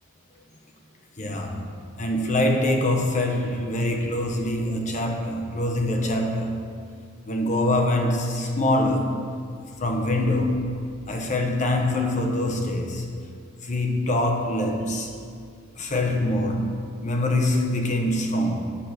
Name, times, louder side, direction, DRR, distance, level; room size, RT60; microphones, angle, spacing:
voice 1, 1.2-1.7 2.0-6.6 7.3-9.2 9.8-10.8 11.1-13.1 13.6-15.1 15.8-16.7 17.0-18.6, left 1 dB, 35° left, 0.9 m, -24 dB
9.7 x 4.9 x 6.2 m
head